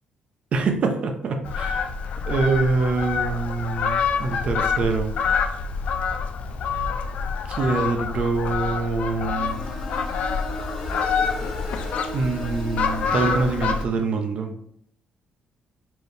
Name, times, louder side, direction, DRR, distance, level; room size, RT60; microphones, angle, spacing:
voice 1, 0.5-1.8 2.3-5.1 7.5-9.6 12.1-14.5, right 4 dB, 50° right, 5 dB, 0.6 m, -25 dB
Fowl, 1.4-13.9, left 5 dB, 60° left, 0.4 m, -27 dB
sound 1, 9.3-14.1, left 1 dB, 15° left, 1.1 m, -37 dB
4.5 x 3.2 x 2.7 m, 0.68 s
cardioid pair, 155°, 3 cm